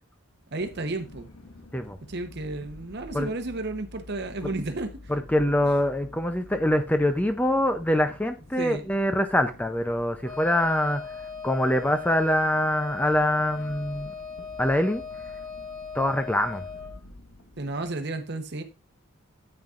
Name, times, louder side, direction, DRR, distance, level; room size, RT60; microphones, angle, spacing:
voice 1, 0.5-1.3 2.1-5.1 8.6-8.8 17.6-18.6, right 2 dB, 50° right, 1.0 m, -32 dB
sound 1, 0.6-17.9, left 2 dB, 90° left, 1.5 m, -49 dB
voice 2, 5.1-14.1 14.6-15.0 15.9-16.6, left 1 dB, 5° left, 0.5 m, -24 dB
Wind instrument woodwind instrument, 10.2-17.0, left 5 dB, 70° left, 1.9 m, -39 dB
9.3 x 8.8 x 2.5 m
head